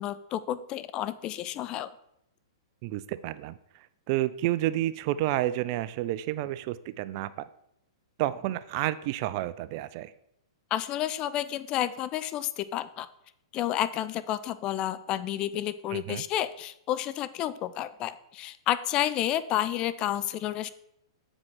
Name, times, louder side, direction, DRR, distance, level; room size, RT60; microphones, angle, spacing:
voice 1, 0.0-1.9 10.7-13.1 13.5-20.7, left 12 dB, 35° left, 14 dB, 0.4 m, -30 dB
voice 2, 2.8-7.5 8.2-10.1 15.9-16.2, right 15 dB, 45° right, 16 dB, 0.3 m, -30 dB
7.5 x 4.9 x 3.7 m, 0.77 s
hypercardioid pair, 115°, 3 cm